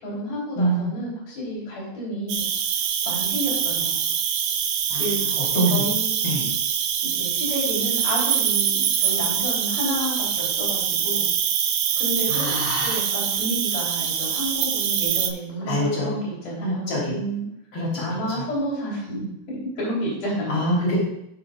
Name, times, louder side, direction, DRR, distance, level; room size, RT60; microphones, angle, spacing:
voice 1, 0.0-2.4 3.0-4.0 5.0-5.2 5.7-6.5 7.0-11.3 12.0-17.5 17.9-20.7, equal, 80° left, -6 dB, 4.8 m, -30 dB
voice 2, 0.6-0.9 4.9-5.0 5.4-5.8 6.2-6.4 12.3-13.0 15.6-16.2 16.6-17.1 17.7-18.4 20.5-21.0, equal, 45° left, -7 dB, 4.4 m, -25 dB
Cricket, 2.3-15.3, right 8 dB, 85° right, 2.2 m, -24 dB
15.0 x 6.1 x 2.4 m, 0.78 s
omnidirectional pair, 3.6 m